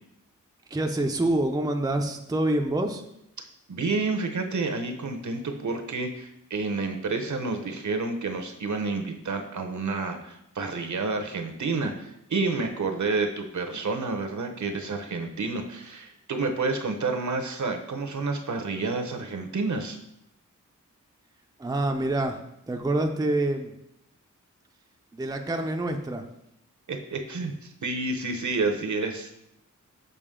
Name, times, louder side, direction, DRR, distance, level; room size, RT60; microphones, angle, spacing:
voice 1, 0.7-3.0 21.6-22.4 22.7-23.8 25.1-26.2, right 1 dB, 10° right, 4 dB, 0.5 m, -26 dB
voice 2, 3.7-20.0 26.9-29.3, right 3 dB, 70° right, 5 dB, 0.9 m, -29 dB
6.8 x 5.0 x 3.7 m, 0.79 s
wide cardioid pair, 90°, 31 cm